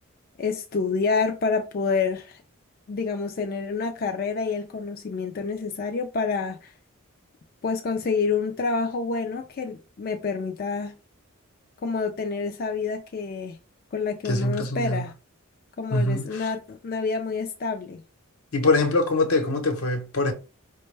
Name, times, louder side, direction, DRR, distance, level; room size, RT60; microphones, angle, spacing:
voice 1, 0.4-2.4 2.9-6.7 7.6-10.9 11.8-13.6 13.9-15.1 15.8-18.0, left 4 dB, 40° left, 0.3 m, -28 dB
voice 2, 14.2-15.0 15.9-16.5 18.5-20.3, left 2 dB, 85° left, 0.9 m, -23 dB
5.0 x 2.2 x 3.2 m
head